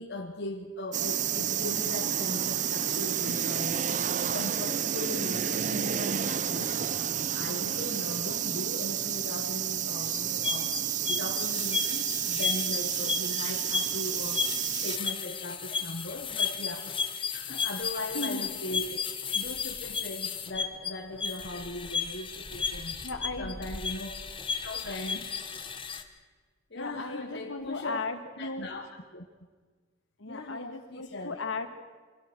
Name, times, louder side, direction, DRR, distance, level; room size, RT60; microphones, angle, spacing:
voice 1, 0.0-19.0 19.3-23.0 23.4-24.2 24.6-25.3 26.7-28.0 28.4-28.9 29.1-29.2 30.3-31.4, left 1 dB, 55° left, 1 dB, 1.4 m, -39 dB
sound 1, 0.9-15.0, right 9 dB, 40° right, 0.6 m, -30 dB
sound 2, 10.1-26.0, left 6 dB, 25° left, 1.2 m, -34 dB
voice 2, 18.1-18.5 22.7-23.6 26.7-28.7 30.2-31.7, left 3 dB, 75° left, 6 dB, 2.0 m, -36 dB
25.5 x 16.5 x 6.2 m, 1.5 s
head